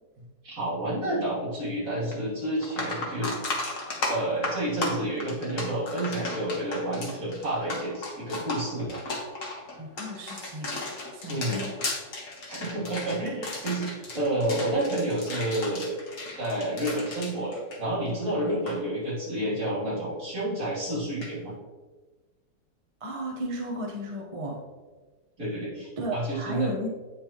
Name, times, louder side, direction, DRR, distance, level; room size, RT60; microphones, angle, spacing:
voice 1, 0.4-3.3 4.1-9.0 11.3-11.6 12.5-15.9 16.4-21.5 25.4-26.7, right 1 dB, 50° right, -8 dB, 3.1 m, -30 dB
sound 1, 2.1-2.2 2.6-18.2 18.5-18.8 21.2-21.3, left 2 dB, 50° left, 1.6 m, -35 dB
voice 2, 9.8-10.7 11.1-11.7 23.0-24.6 26.0-26.9, right 1 dB, 25° right, -2 dB, 0.7 m, -33 dB
8.6 x 6.4 x 3.0 m, 1.3 s
omnidirectional pair, 1.9 m